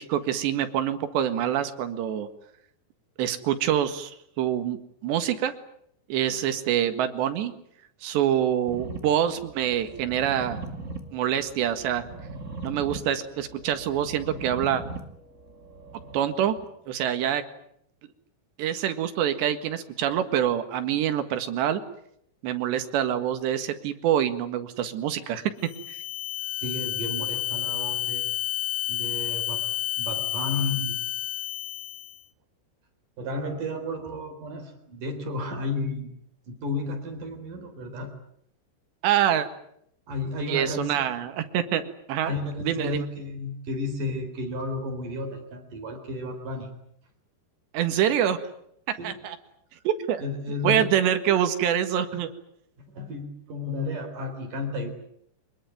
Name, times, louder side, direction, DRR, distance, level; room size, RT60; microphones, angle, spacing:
voice 1, 0.0-2.3 3.2-4.8 5.0-5.5 6.1-7.5 8.0-10.6 11.1-12.0 12.6-14.8 16.1-16.6 16.9-17.4 18.6-21.8 22.4-25.4 25.9-26.0 39.0-39.5 40.5-42.3 42.6-43.1 47.7-48.5 49.0-49.4 49.9-50.2 50.6-52.3, right 10 dB, 80° right, 9 dB, 3.9 m, -25 dB
sound 1, 8.7-16.6, right 3 dB, 20° right, 2.2 m, -40 dB
sound 2, 25.6-32.2, left 14 dB, 70° left, 1.8 m, -30 dB
voice 2, 26.6-28.3 28.9-29.7 30.0-31.0 33.2-36.2 36.5-38.1 40.1-41.1 42.3-46.7 49.0-49.2 50.2-51.0 52.8-54.9, left 2 dB, 50° right, 6 dB, 5.3 m, -32 dB
25.0 x 21.0 x 9.4 m, 0.71 s
omnidirectional pair, 4.9 m